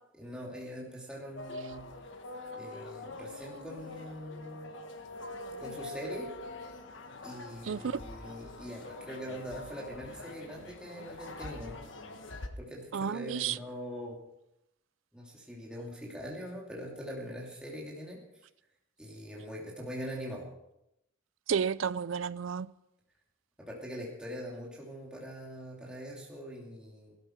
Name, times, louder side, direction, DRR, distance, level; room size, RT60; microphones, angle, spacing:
voice 1, 0.2-1.8 2.6-4.7 5.6-6.3 7.2-11.8 12.6-14.2 15.1-18.2 19.0-20.5 23.6-27.2, equal, 5° right, 2.7 m, -42 dB
sound 1, 1.4-12.5, left 2 dB, 65° left, 1.3 m, -44 dB
voice 2, 7.7-8.0 12.9-13.6 21.5-22.7, right 7 dB, 75° right, 0.4 m, -31 dB
17.5 x 13.0 x 4.5 m
head